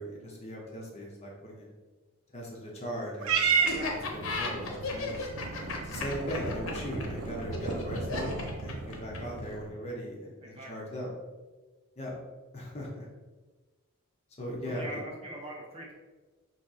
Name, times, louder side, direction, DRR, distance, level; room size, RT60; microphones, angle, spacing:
voice 1, 0.0-1.7 2.3-4.0 4.4-5.3 5.8-11.1 12.0-12.1 12.5-13.1 14.4-14.9, equal, 30° left, -2 dB, 0.5 m, -39 dB
Purr / Meow, 3.2-9.7, right 5 dB, 85° right, 0.4 m, -33 dB
Laughter, 3.6-9.4, left 3 dB, 80° left, 0.5 m, -35 dB
voice 2, 10.4-10.9 14.6-15.9, right 1 dB, 25° right, -3 dB, 0.5 m, -42 dB
2.7 x 2.3 x 3.5 m, 1.3 s
head